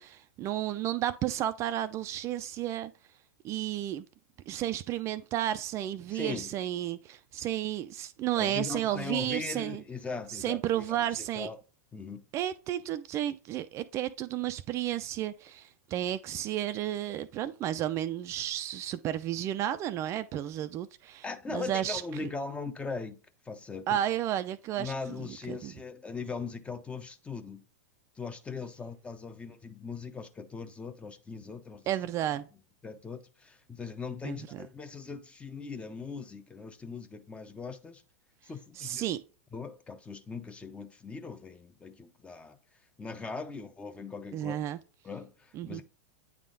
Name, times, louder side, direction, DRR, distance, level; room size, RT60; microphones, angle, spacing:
voice 1, 0.0-2.9 3.4-4.0 4.5-9.8 10.3-11.5 12.3-21.2 21.5-22.3 23.9-24.9 25.5-25.7 31.9-32.5 34.2-34.6 38.8-39.2 44.3-44.8 45.6-45.8, right 12 dB, 35° right, 0.4 m, -32 dB
voice 2, 6.1-6.5 8.3-11.6 11.9-12.3 21.2-23.2 23.4-24.0 24.8-27.7 28.2-31.9 32.8-38.0 38.4-39.0 39.5-42.6 43.0-44.5 45.0-45.8, left 4 dB, 15° left, 0.7 m, -40 dB
8.9 x 3.7 x 3.9 m
hypercardioid pair, 100°, 8 cm